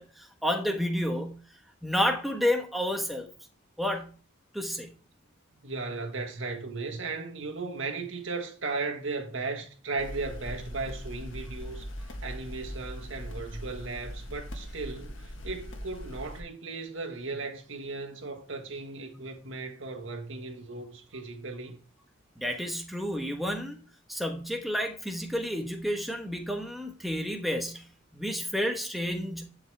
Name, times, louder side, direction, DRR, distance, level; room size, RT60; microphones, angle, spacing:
voice 1, 0.0-1.4 1.8-3.3 3.8-4.1 4.5-4.9 22.4-23.8 24.1-27.9 28.1-29.5, equal, ahead, 1.2 m, -30 dB
voice 2, 5.6-21.8, right 3 dB, 70° right, 1.5 m, -36 dB
sound 1, 10.0-16.4, equal, 70° left, 1.5 m, -40 dB
11.0 x 4.9 x 3.4 m
head